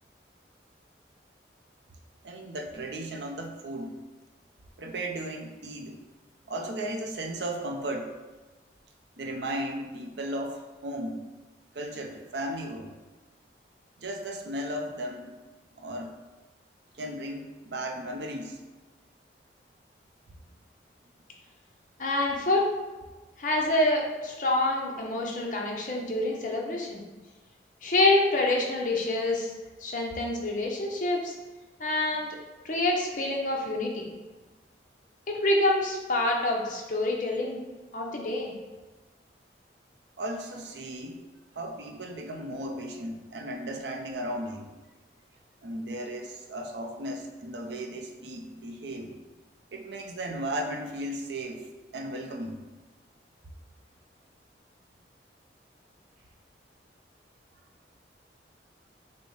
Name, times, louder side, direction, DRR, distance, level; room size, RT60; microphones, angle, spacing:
voice 1, 2.2-4.0 4.8-6.0 6.5-8.1 9.2-11.2 11.7-12.9 14.0-15.4 15.8-16.2 16.9-18.6 40.2-41.2 41.6-44.7 45.6-49.1 49.7-51.6 51.9-52.5, right 1 dB, 75° right, 3 dB, 0.6 m, -35 dB
voice 2, 22.0-22.7 23.4-27.0 27.8-29.5 29.8-31.3 31.8-32.3 32.6-34.1 35.3-37.6 37.9-38.5, left 2 dB, 45° left, -1 dB, 0.8 m, -27 dB
6.2 x 2.1 x 3.9 m, 1.2 s
head